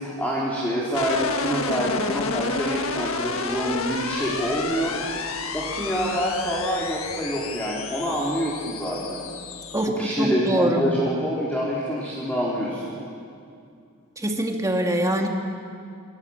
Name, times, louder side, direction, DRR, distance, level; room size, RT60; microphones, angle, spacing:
voice 1, 0.0-4.9 5.5-9.2 10.0-12.8, equal, 10° left, -6 dB, 4.4 m, -26 dB
sound 1, 0.9-9.9, left 4 dB, 70° left, 1.7 m, -30 dB
voice 2, 9.7-10.9 14.2-15.3, right 1 dB, 15° right, 2 dB, 2.6 m, -24 dB
27.0 x 26.0 x 7.5 m, 2.4 s
head